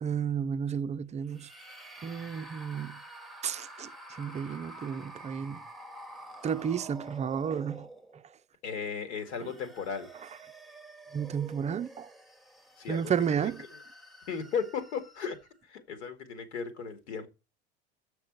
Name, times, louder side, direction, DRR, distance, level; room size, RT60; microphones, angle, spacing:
voice 1, 0.0-1.5 2.0-3.0 3.4-3.9 4.2-5.6 6.4-7.9 11.1-12.1 12.9-13.6, right 7 dB, 20° right, 0.5 m, -32 dB
sound 1, 1.3-8.4 9.1-15.6, right 1 dB, ahead, 1.0 m, -49 dB
voice 2, 8.6-10.1 12.8-13.1 13.4-13.5 14.3-15.4 15.7-17.3, left 6 dB, 75° left, 2.0 m, -35 dB
7.5 x 5.9 x 7.3 m
hypercardioid pair, 75°, 33 cm